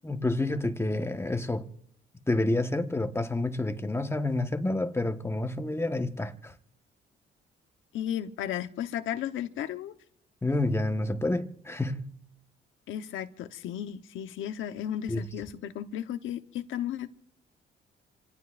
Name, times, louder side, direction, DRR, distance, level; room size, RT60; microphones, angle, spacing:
voice 1, 0.0-1.7 2.3-6.5 10.4-12.1 15.1-15.2, left 2 dB, 10° left, 1.4 m, -29 dB
voice 2, 7.9-9.9 12.9-17.1, left 10 dB, 85° left, 1.1 m, -34 dB
28.0 x 17.5 x 2.6 m
cardioid pair, 90°, 20 cm